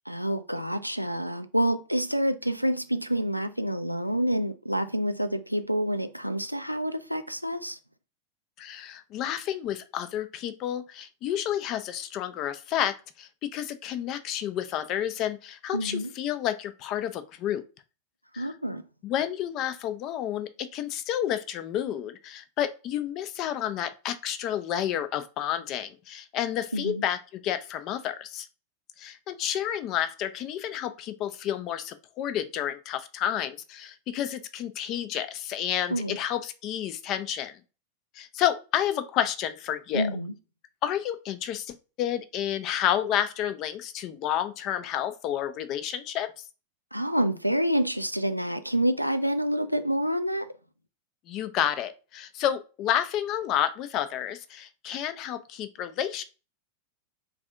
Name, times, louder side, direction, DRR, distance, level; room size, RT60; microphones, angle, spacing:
voice 1, 0.1-7.8 15.7-16.1 18.4-18.8 26.7-27.0 35.9-36.2 39.9-40.3 46.9-50.5, equal, 90° right, 0.3 m, -28 dB
voice 2, 8.6-17.6 18.3-18.5 19.0-28.5 29.0-37.6 38.1-40.1 40.8-46.4 51.3-56.2, left 11 dB, 40° left, 0.4 m, -30 dB
3.2 x 2.6 x 3.5 m
figure-of-eight pair, 90°, 0 cm